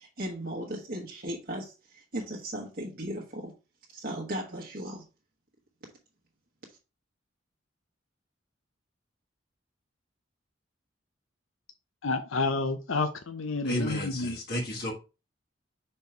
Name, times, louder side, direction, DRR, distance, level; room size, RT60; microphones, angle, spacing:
voice 1, 0.0-3.5 3.9-5.0, right 1 dB, 50° right, 1.2 m, -37 dB
voice 2, 12.0-14.4, left 3 dB, 90° left, 0.7 m, -29 dB
voice 3, 13.6-14.9, equal, 50° left, 1.6 m, -32 dB
5.4 x 4.4 x 4.5 m
head